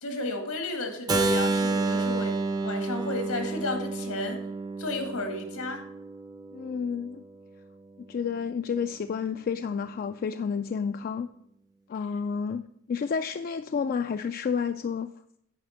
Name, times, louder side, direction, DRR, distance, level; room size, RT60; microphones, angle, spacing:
voice 1, 0.0-2.3 2.6-4.4 4.8-5.8, left 2 dB, 85° left, 2.0 m, -33 dB
Keyboard (musical), 1.1-6.9, right 3 dB, 20° right, 0.5 m, -29 dB
voice 2, 6.5-7.2 8.1-11.3 11.9-15.1, left 6 dB, 40° left, 0.3 m, -30 dB
9.5 x 5.0 x 6.4 m
head